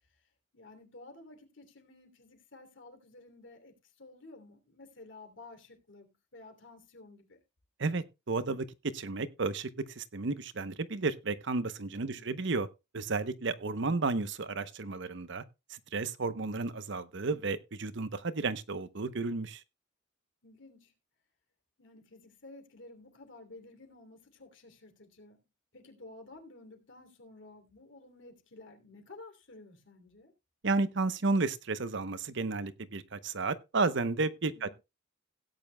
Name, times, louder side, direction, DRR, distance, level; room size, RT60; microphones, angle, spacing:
voice 1, 0.5-7.4 12.0-12.4 20.4-20.9 21.8-25.4 25.7-30.3 34.5-34.7, left 2 dB, 65° left, 2.9 m, -53 dB
voice 2, 7.8-8.7 8.9-12.7 12.9-15.4 15.7-19.6 30.6-34.7, right 3 dB, 60° right, 0.8 m, -32 dB
17.0 x 9.3 x 2.2 m
head